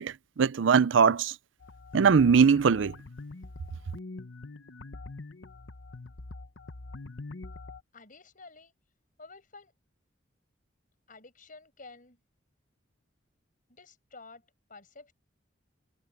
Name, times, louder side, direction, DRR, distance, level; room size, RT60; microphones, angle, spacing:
voice 1, 0.0-1.3 1.9-2.9, right 6 dB, 80° right, 0.5 m, -21 dB
sound 1, 1.6-7.8, left 3 dB, 80° left, 1.1 m, -44 dB
voice 2, 7.9-8.7 9.2-9.7 11.1-12.2 13.7-15.1, left 3 dB, 45° left, 6.2 m, -51 dB
head